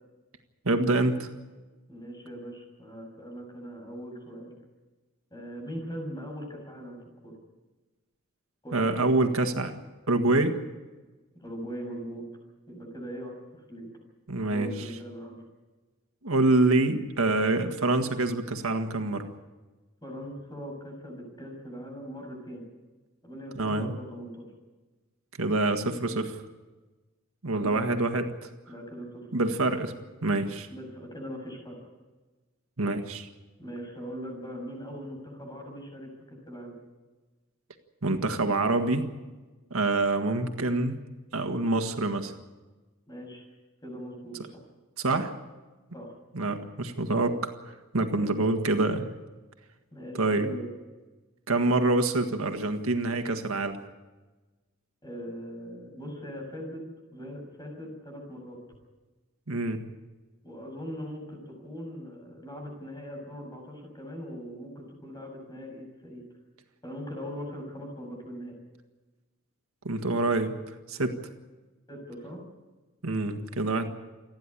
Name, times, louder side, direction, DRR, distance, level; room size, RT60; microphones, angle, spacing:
voice 1, 0.7-1.3 8.7-9.7 10.1-10.6 14.3-14.7 16.2-19.3 23.5-23.9 25.4-26.4 27.4-28.5 29.3-29.9 30.2-30.7 32.8-33.3 38.0-39.1 39.7-41.0 41.3-42.3 45.0-45.3 46.3-47.5 47.9-49.0 50.2-50.5 51.5-53.8 59.5-59.8 69.9-70.6 70.9-71.2 73.0-73.9, right 2 dB, 85° right, 6 dB, 1.8 m, -26 dB
voice 2, 1.9-4.5 5.3-7.0 7.2-7.3 8.6-9.1 11.4-12.2 12.7-13.9 14.5-15.4 20.0-22.6 23.2-24.5 27.5-27.9 28.7-29.3 30.7-31.8 33.6-36.7 43.1-43.4 43.8-44.4 45.9-46.1 49.9-50.7 55.0-56.8 57.1-58.6 60.4-66.2 66.8-68.5 71.9-72.4, equal, 20° left, 2 dB, 6.8 m, -40 dB
29.0 x 10.5 x 10.0 m, 1.2 s
head